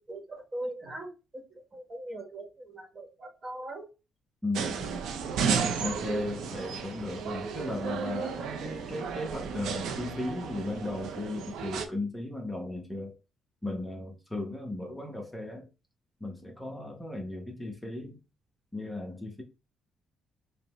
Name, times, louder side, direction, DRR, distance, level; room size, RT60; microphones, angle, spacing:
voice 1, 0.5-1.4 1.7-3.8, right 1 dB, 30° right, 1.2 m, -40 dB
voice 2, 4.4-5.1 5.8-13.2 13.6-15.7 16.2-18.2 18.7-19.4, left 2 dB, 10° left, 0.9 m, -36 dB
sound 1, 4.5-11.9, right 6 dB, 80° right, 0.6 m, -33 dB
5.1 x 2.2 x 3.0 m
cardioid pair, 90°, 0 cm